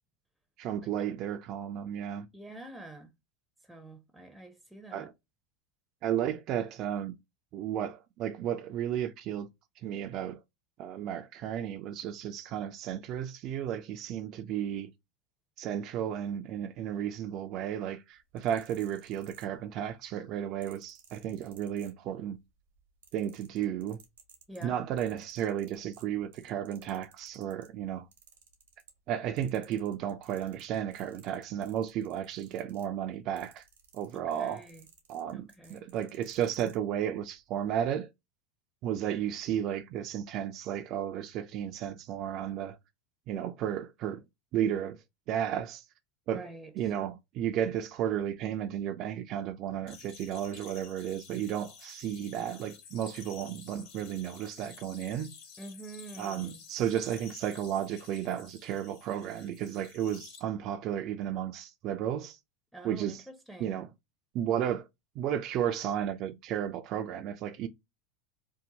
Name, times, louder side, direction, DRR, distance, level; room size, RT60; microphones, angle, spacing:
voice 1, 0.6-2.3 4.9-5.1 6.0-7.1 7.5-9.5 9.8-10.4 10.8-14.9 15.6-22.4 23.1-24.0 24.6-28.1 29.1-33.6 33.9-34.7 35.1-38.1 38.8-42.8 43.3-44.2 44.5-45.0 45.3-45.8 46.3-46.4 46.8-55.3 56.2-62.4 62.8-63.2 63.6-63.9 64.3-64.9 65.2-67.7, right 10 dB, 50° right, 0.3 m, -33 dB
voice 2, 2.3-3.1 3.6-5.1 24.5-24.8 34.1-34.9 35.3-35.8 46.3-46.7 55.6-56.6 62.7-63.8, right 2 dB, ahead, 0.6 m, -47 dB
sound 1, 18.2-19.9 20.6-22.4 22.7-27.7 28.1-29.1 29.4-36.8 37.5-37.7, right 7 dB, 85° right, 0.7 m, -58 dB
sound 2, 49.9-60.4, left 6 dB, 60° left, 0.7 m, -51 dB
2.7 x 2.0 x 2.7 m
hypercardioid pair, 95°, 0 cm